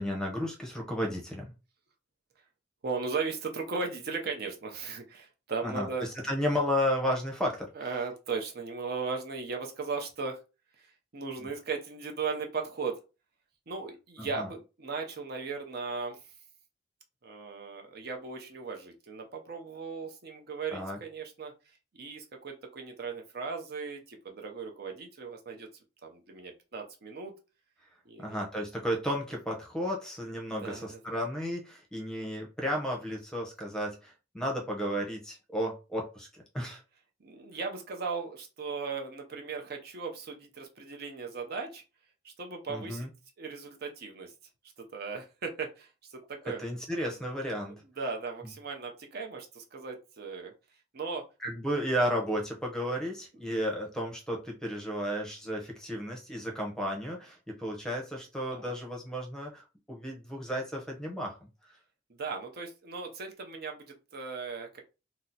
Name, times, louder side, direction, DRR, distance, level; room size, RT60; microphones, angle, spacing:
voice 1, 0.0-1.5 5.6-7.7 11.4-11.5 14.2-14.5 20.7-21.0 28.2-36.8 42.7-43.1 46.6-47.8 51.4-61.4, equal, 5° left, 1 dB, 0.7 m, -33 dB
voice 2, 2.8-6.1 7.7-10.4 10.8-13.0 13.7-16.3 17.2-21.5 21.9-25.7 26.0-27.4 28.1-28.4 30.5-31.0 37.2-41.8 42.2-43.1 43.4-44.3 44.8-46.6 48.0-50.5 50.9-51.3 58.5-58.7 62.1-64.8, right 4 dB, 55° right, 3 dB, 0.6 m, -37 dB
2.8 x 2.0 x 3.8 m, 0.30 s
head